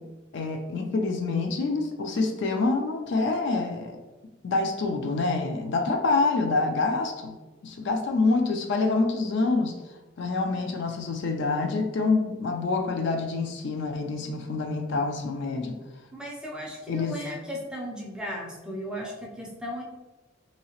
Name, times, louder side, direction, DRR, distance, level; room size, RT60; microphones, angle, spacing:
voice 1, 0.3-4.0 4.4-7.4 7.6-9.8 10.2-15.8 16.9-17.2, left 3 dB, 60° left, 4 dB, 0.4 m, -26 dB
voice 2, 16.1-19.8, equal, 5° right, -2 dB, 0.4 m, -36 dB
2.8 x 2.8 x 2.8 m, 1.1 s
head